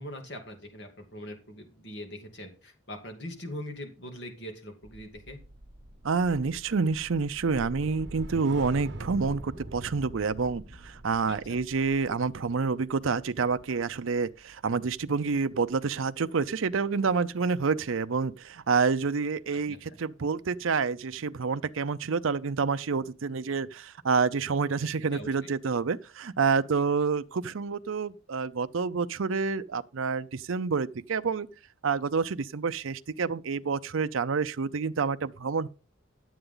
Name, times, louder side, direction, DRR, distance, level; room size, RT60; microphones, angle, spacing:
voice 1, 0.0-5.4 11.3-11.6 19.7-20.0 25.1-25.3, left 1 dB, 55° left, 2.4 m, -42 dB
sound 1, 4.8-15.2 15.6-15.9, right 1 dB, 55° right, 1.2 m, -45 dB
voice 2, 6.0-31.5 31.8-35.7, right 5 dB, 70° right, 0.5 m, -28 dB
11.5 x 7.9 x 3.8 m
head